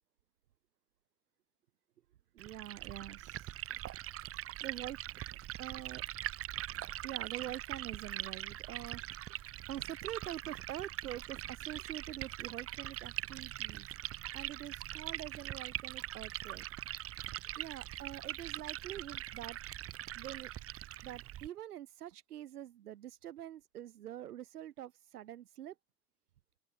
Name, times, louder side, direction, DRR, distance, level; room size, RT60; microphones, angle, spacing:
voice 1, 2.3-3.5 4.6-5.0 5.6-6.0 7.0-13.9 14.3-16.6 17.5-19.6 20.1-20.5 21.0-25.7, right 12 dB, 70° right, 4.9 m, -45 dB
Liquid, 2.4-21.5, right 13 dB, 30° right, 0.9 m, -42 dB
open air
figure-of-eight pair, 80°, 47 cm